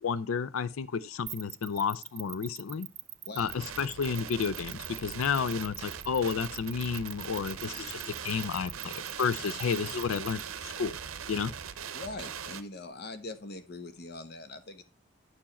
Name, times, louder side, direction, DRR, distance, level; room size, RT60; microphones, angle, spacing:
voice 1, 0.0-2.9 3.4-10.9 11.3-11.5, left 6 dB, 85° left, 0.4 m, -31 dB
sound 1, 1.3-10.4, right 16 dB, 35° right, 0.3 m, -43 dB
sound 2, 3.4-12.6, right 7 dB, 85° right, 0.7 m, -41 dB
voice 2, 11.9-14.8, left 2 dB, 50° left, 0.9 m, -42 dB
8.6 x 4.6 x 4.2 m
head